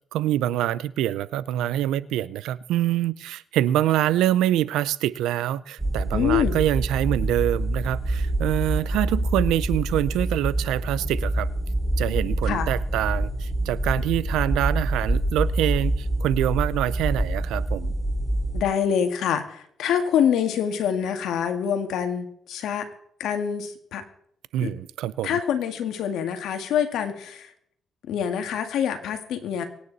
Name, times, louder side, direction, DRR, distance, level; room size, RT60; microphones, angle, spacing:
voice 1, 0.1-11.5 12.0-17.9 24.5-25.4, right 13 dB, 90° right, 19 dB, 0.5 m, -25 dB
sound 1, 5.8-18.6, right 1 dB, 20° right, 3.1 m, -26 dB
voice 2, 6.1-6.6 12.5-12.7 18.5-22.9 23.2-24.0 24.6-24.7 25.2-27.5 28.1-29.7, left 8 dB, 80° left, 7 dB, 2.1 m, -25 dB
24.5 x 9.5 x 4.2 m, 0.69 s
cardioid pair, 70°, 0 cm